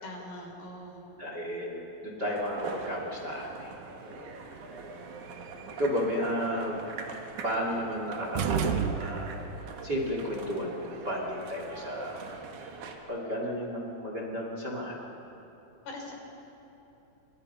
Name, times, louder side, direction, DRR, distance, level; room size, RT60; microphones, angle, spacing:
voice 1, 0.0-1.0 15.8-16.1, left 1 dB, 80° left, 1 dB, 6.2 m, -42 dB
voice 2, 1.2-3.7 4.0-4.3 5.7-6.8 7.4-9.3 9.8-12.2 13.0-15.0, equal, 30° right, -1 dB, 3.0 m, -33 dB
sound 1, 2.2-13.0, right 4 dB, 55° right, 2.9 m, -42 dB
sound 2, 8.4-9.6, right 7 dB, 75° right, 2.9 m, -30 dB
29.0 x 26.5 x 5.7 m, 2.9 s
omnidirectional pair, 4.4 m